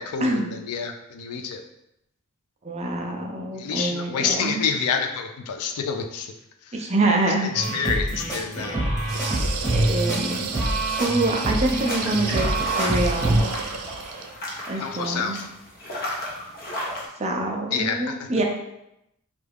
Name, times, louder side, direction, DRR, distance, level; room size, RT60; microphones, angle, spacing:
voice 1, 0.0-1.6 3.5-6.3 6.7-6.8 7.4-8.8 14.8-15.5 17.7-18.3, left 6 dB, 75° left, 6 dB, 0.4 m, -28 dB
voice 2, 2.6-4.6 6.7-7.5 9.7-10.5 11.0-13.4 14.7-15.4 17.2-18.4, right 2 dB, 30° right, 0 dB, 0.5 m, -25 dB
sound 1, 7.5-13.4, right 1 dB, 15° left, 1.2 m, -25 dB
sound 2, 9.0-14.4, right 5 dB, 85° right, 0.4 m, -33 dB
sound 3, 11.8-17.1, left 1 dB, 45° left, 0.8 m, -33 dB
3.3 x 2.3 x 3.4 m, 0.84 s
head